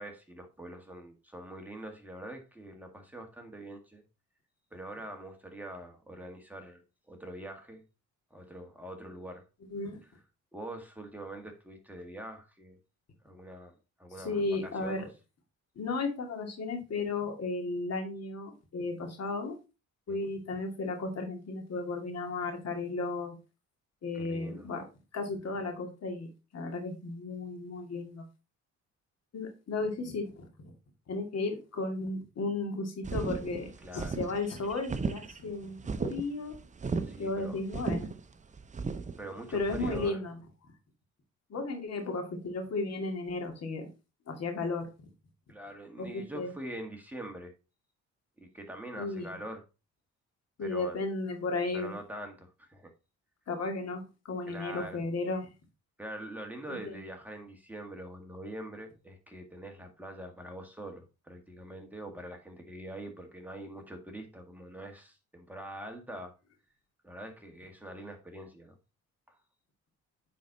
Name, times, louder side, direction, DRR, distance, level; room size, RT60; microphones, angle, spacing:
voice 1, 0.0-4.0 4.7-6.8 7.1-7.8 8.3-9.5 10.5-12.8 13.2-15.1 20.1-20.3 24.1-24.7 33.8-34.2 37.0-37.6 39.2-40.2 45.5-47.5 48.4-49.6 50.6-51.0 51.7-52.9 54.5-55.0 56.0-66.3 67.0-68.8 69.3-69.4, right 1 dB, 5° right, 3 dB, 1.8 m, -44 dB
voice 2, 14.2-15.1 15.8-19.6 20.1-23.3 24.0-24.9 25.1-28.2 29.3-30.7 31.1-36.5 37.2-38.1 39.5-40.4 41.5-43.9 44.3-44.9 46.0-46.5 49.0-49.3 50.6-51.9 53.5-55.5 56.7-57.0, left 3 dB, 55° left, 4 dB, 2.3 m, -34 dB
sound 1, 33.0-40.1, right 4 dB, 25° right, 0.6 m, -36 dB
9.4 x 4.3 x 4.0 m, 0.30 s
cardioid pair, 90°, 30 cm